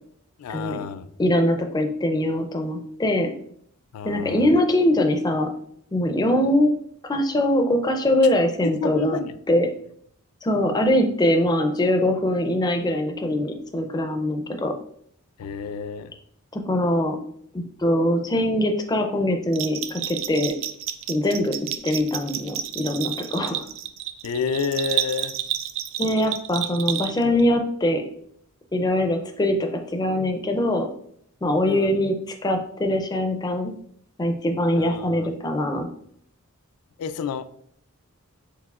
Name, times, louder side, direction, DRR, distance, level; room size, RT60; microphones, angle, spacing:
voice 1, 0.4-1.1 3.9-4.5 8.8-9.3 15.4-16.1 24.2-25.3 31.7-32.0 34.7-35.3 37.0-37.5, left 5 dB, 85° left, 12 dB, 0.3 m, -29 dB
voice 2, 1.2-3.3 4.0-5.5 5.9-6.8 7.0-9.2 9.5-9.7 10.4-14.7 16.5-17.2 17.5-20.5 21.1-21.6 21.8-23.6 26.0-28.0 28.7-30.9 31.4-32.1 32.4-33.7 34.2-35.9, left 1 dB, 20° left, 5 dB, 0.4 m, -22 dB
Bell, 19.5-27.4, right 11 dB, 60° right, 0.3 m, -30 dB
4.8 x 3.6 x 2.3 m, 0.65 s
head